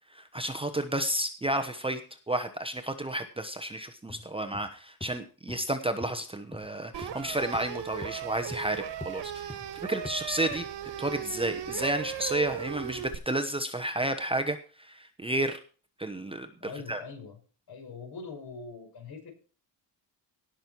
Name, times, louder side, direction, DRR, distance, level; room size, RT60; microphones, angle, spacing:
voice 1, 0.1-2.0 2.3-9.6 9.8-10.6 11.0-15.6 16.0-17.0, right 1 dB, 10° right, 7 dB, 1.0 m, -31 dB
sound 1, 4.1-4.3 4.5-4.7 5.0-5.1 5.5-5.6 6.0-6.2 6.5-6.7 7.0-7.2 7.5-7.7 8.0-8.1 8.5-8.7 9.0-9.1 9.5-9.7 10.0-10.2 10.5-10.7 11.1-11.2, left 2 dB, 10° left, 0.9 m, -43 dB
sound 2, 6.9-13.2, right 9 dB, 70° right, 1.8 m, -37 dB
voice 2, 16.6-17.4 17.7-19.3, left 4 dB, 55° left, 3 dB, 5.5 m, -42 dB
18.0 x 6.3 x 4.6 m, 0.38 s
wide cardioid pair, 155°, 44 cm